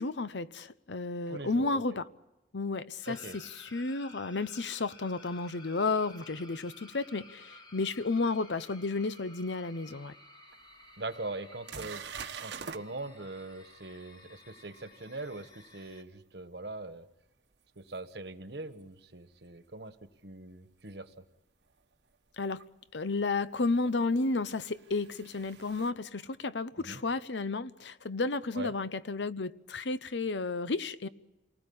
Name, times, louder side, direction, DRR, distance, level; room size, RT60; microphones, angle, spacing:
voice 1, 0.0-2.1 2.5-3.4 3.7-10.1 22.4-22.6 22.9-31.1, left 3 dB, 90° left, 0.9 m, -32 dB
voice 2, 1.3-2.0 3.1-3.4 11.0-12.1 12.4-17.1 17.7-21.1 26.8-27.0 28.5-28.7, right 2 dB, 70° right, 1.4 m, -42 dB
sound 1, 3.0-16.0, left 2 dB, 25° left, 2.1 m, -54 dB
sound 2, 10.5-10.6 11.1-11.2 11.7-12.8 17.9-18.0 20.8-20.9 22.6-22.7 24.1-25.9, right 6 dB, 85° right, 1.2 m, -44 dB
28.5 x 19.5 x 8.7 m
head